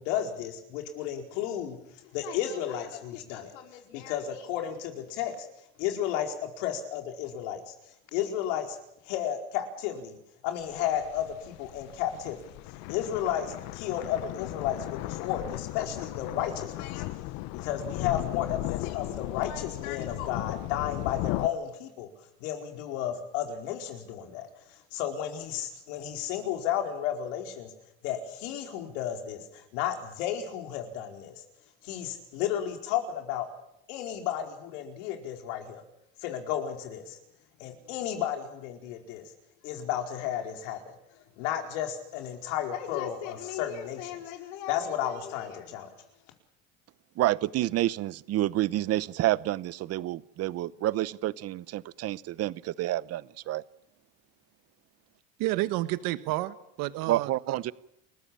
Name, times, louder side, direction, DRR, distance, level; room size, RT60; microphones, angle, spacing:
voice 1, 0.0-5.5 5.8-7.7 8.1-8.8 9.0-10.2 10.4-17.1 17.5-22.1 22.4-27.7 28.0-31.3 31.8-33.5 33.9-35.8 36.2-37.2 37.6-39.2 39.6-40.8 41.4-45.9, left 10 dB, 80° left, 4 dB, 4.7 m, -33 dB
sound 1, 10.6-21.5, left 18 dB, 65° left, 1.0 m, -36 dB
voice 2, 47.2-53.6 57.1-57.7, right 15 dB, 40° right, 19 dB, 0.8 m, -29 dB
voice 3, 55.4-57.6, right 17 dB, 60° right, 13 dB, 1.3 m, -30 dB
29.5 x 14.5 x 8.8 m, 0.80 s
supercardioid pair, 125°, 37 cm